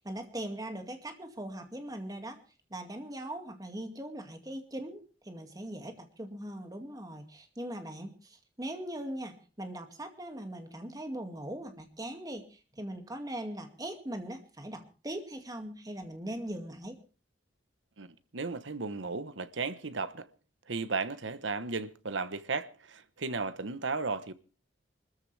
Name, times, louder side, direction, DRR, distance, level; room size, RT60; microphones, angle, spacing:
voice 1, 0.0-2.4 2.7-17.0, right 1 dB, 20° right, 2.2 m, -40 dB
voice 2, 18.3-20.3 20.7-24.3, right 4 dB, 85° right, 1.1 m, -35 dB
25.0 x 14.0 x 3.4 m
head